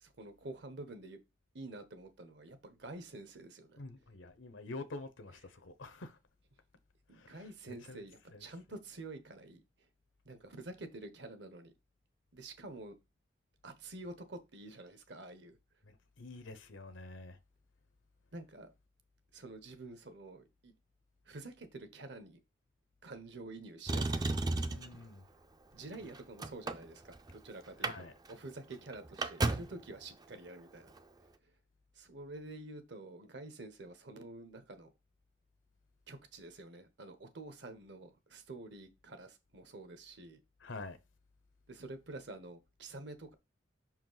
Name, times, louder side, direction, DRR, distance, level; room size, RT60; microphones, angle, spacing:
voice 1, 0.0-1.2 1.5-3.8 7.1-9.6 10.2-11.7 12.3-12.9 13.6-15.6 18.3-18.7 19.3-20.7 21.3-22.4 23.0-24.4 25.7-27.9 28.3-30.9 32.0-34.9 36.1-40.4 41.7-43.3, right 2 dB, 60° right, 0.9 m, -48 dB
voice 2, 3.8-6.2 7.1-8.0 8.3-8.5 15.8-17.4 24.5-25.3 27.8-28.1 40.6-41.0, left 2 dB, 80° left, 0.9 m, -47 dB
Motor vehicle (road), 23.9-25.0 25.8-27.3 27.7-28.0 28.3-28.4 28.7-29.8 30.9-31.0, right 2 dB, 20° right, 0.4 m, -34 dB
5.6 x 4.5 x 3.9 m
head